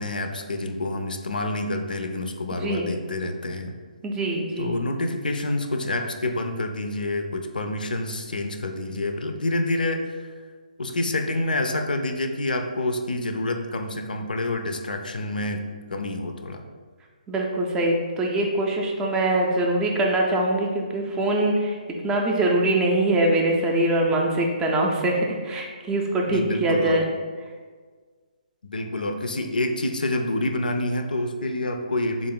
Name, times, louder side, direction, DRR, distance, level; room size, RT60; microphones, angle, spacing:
voice 1, 0.0-3.7 4.6-10.3 10.8-15.6 15.9-16.6 26.3-27.0 28.6-32.3, left 2 dB, 80° left, 6 dB, 0.4 m, -27 dB
voice 2, 4.0-4.7 17.3-21.8 22.0-27.0, right 1 dB, 15° right, 0 dB, 0.4 m, -23 dB
3.6 x 2.4 x 3.7 m, 1.5 s
figure-of-eight pair, 145°, 5 cm